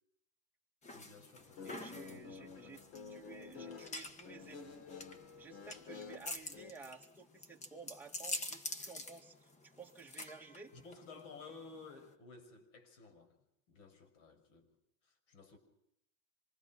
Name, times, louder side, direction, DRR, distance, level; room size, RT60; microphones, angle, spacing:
sound 1, 0.8-12.1, left 2 dB, 20° left, 1.5 m, -47 dB
voice 1, 0.9-2.7 3.0-3.2 10.7-14.8 15.0-15.6, left 4 dB, 80° left, 8 dB, 6.1 m, -55 dB
Guitar, 1.4-6.7, left 5 dB, 60° left, 3.4 m, -51 dB
voice 2, 1.6-2.8 3.1-4.9 5.4-10.7, right 4 dB, 5° right, -1 dB, 2.0 m, -54 dB
26.5 x 23.0 x 6.1 m, 0.76 s
supercardioid pair, 150°, 37 cm